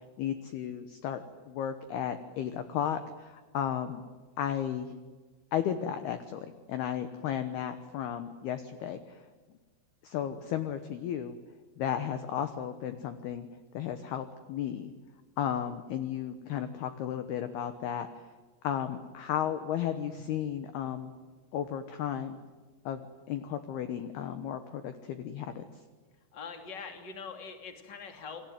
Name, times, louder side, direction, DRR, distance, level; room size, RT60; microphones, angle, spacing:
voice 1, 0.2-4.0 4.4-4.9 5.5-9.2 10.0-11.4 11.8-13.5 13.7-14.9 15.4-18.2 18.6-21.1 21.5-22.4 22.9-23.0 23.3-25.6, left 9 dB, 70° left, 9 dB, 2.5 m, -34 dB
voice 2, 26.3-28.5, left 5 dB, 30° left, 5 dB, 2.5 m, -43 dB
29.0 x 22.0 x 9.4 m, 1.4 s
omnidirectional pair, 5.9 m